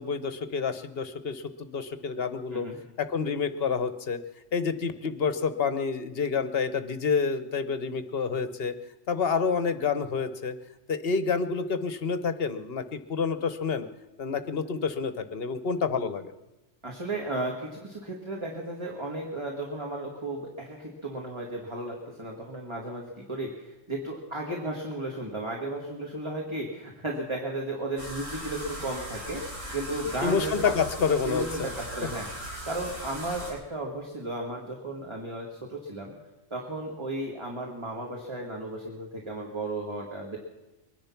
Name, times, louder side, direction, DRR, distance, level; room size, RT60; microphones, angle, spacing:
voice 1, 0.0-2.7 3.0-4.2 4.5-8.7 9.1-10.5 10.9-13.9 14.2-16.3 30.2-31.7, left 5 dB, 55° left, 11 dB, 1.1 m, -28 dB
voice 2, 16.8-30.7 31.3-32.3 32.6-36.1 36.5-40.4, right 1 dB, 25° right, -1 dB, 2.0 m, -34 dB
sound 1, 28.0-33.5, equal, 90° right, 5.7 m, -38 dB
22.5 x 10.5 x 5.9 m, 1.0 s
omnidirectional pair, 1.3 m